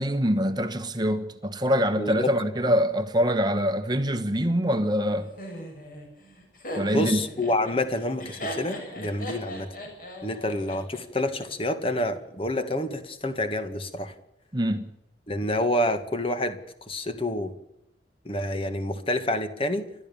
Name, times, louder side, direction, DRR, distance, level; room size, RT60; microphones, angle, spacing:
voice 1, 0.0-5.3 6.8-7.2 14.5-14.9, equal, 25° right, 1.2 m, -24 dB
voice 2, 2.0-2.3 6.9-9.8 10.2-14.1 15.3-16.6 16.9-17.5 18.3-19.9, left 1 dB, 30° left, 1.9 m, -28 dB
Laughter, 5.4-11.5, equal, 45° left, 7.0 m, -38 dB
29.5 x 12.5 x 7.1 m
head